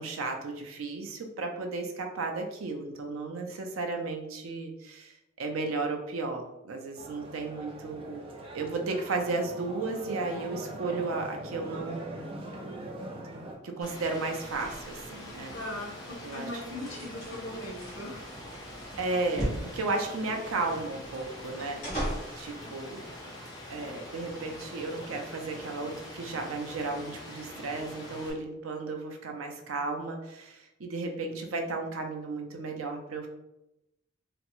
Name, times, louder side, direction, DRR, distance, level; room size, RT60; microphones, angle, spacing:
voice 1, 0.0-8.3 8.5-12.3 13.6-15.6 16.2-16.5 16.8-17.0 19.0-21.8 22.4-23.0 23.7-33.3, right 3 dB, 85° right, 3 dB, 0.5 m, -34 dB
sound 1, 7.0-13.6, right 1 dB, 25° right, 0.4 m, -41 dB
sound 2, 13.8-22.4, equal, 35° left, 1.3 m, -40 dB
Rain, 13.8-28.3, left 1 dB, 20° left, 0.6 m, -44 dB
voice 2, 15.5-18.3, left 1 dB, 80° left, 0 dB, 0.8 m, -39 dB
3.4 x 2.0 x 2.9 m, 0.90 s
head